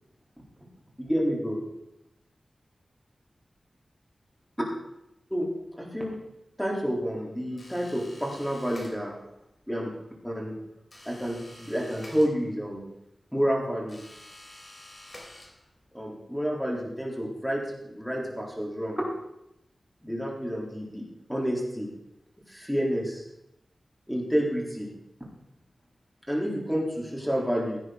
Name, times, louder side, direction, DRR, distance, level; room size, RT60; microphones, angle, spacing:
voice 1, 1.0-1.6 5.3-6.2 6.6-9.2 9.7-9.9 10.2-10.6 11.1-12.8 13.3-14.0 15.9-19.0 20.0-21.9 22.5-23.2 24.1-24.9 26.3-27.8, equal, ahead, -2 dB, 3.7 m, -29 dB
sound 1, 7.6-9.4 10.9-12.8 13.9-15.9, left 1 dB, 35° left, 3.2 m, -49 dB
16.0 x 9.7 x 4.0 m, 0.84 s
wide cardioid pair, 80°, 0 cm